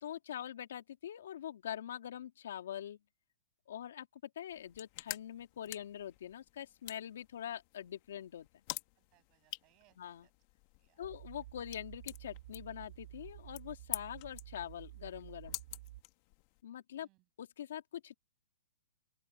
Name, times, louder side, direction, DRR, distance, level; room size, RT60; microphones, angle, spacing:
voice 1, 0.0-3.0 3.7-8.5 10.0-10.3 11.0-15.6 16.6-17.1 17.4-18.1, left 10 dB, 65° left, 3.1 m, -44 dB
sound 1, 4.5-16.6, left 22 dB, 35° left, 1.5 m, -49 dB
voice 2, 9.0-10.3 10.8-11.0 17.0-17.2, right 23 dB, 25° right, 7.3 m, -72 dB
sound 2, 11.0-16.0, right 16 dB, 45° right, 4.5 m, -52 dB
open air
hypercardioid pair, 165°, 0 cm